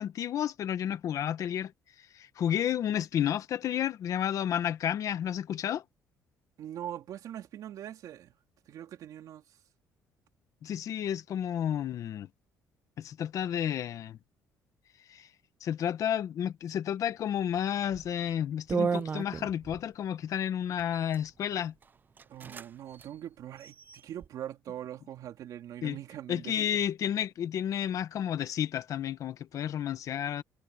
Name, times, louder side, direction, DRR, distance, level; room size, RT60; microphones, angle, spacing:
voice 1, 0.0-1.7 2.1-5.8 10.6-12.3 13.0-14.2 15.1-15.3 15.6-21.7 25.8-26.0 26.3-30.4, left 10 dB, 55° left, 1.5 m, -31 dB
voice 2, 6.6-8.3 8.7-9.4 22.3-26.8, right 11 dB, 65° right, 3.4 m, -42 dB
sound 1, 17.9-18.1 18.7-19.8 20.8-21.2 21.8-21.9 22.2-22.7 22.9-23.1 23.6-24.3, right 5 dB, 30° right, 0.5 m, -34 dB
cardioid pair, 115°, 7 cm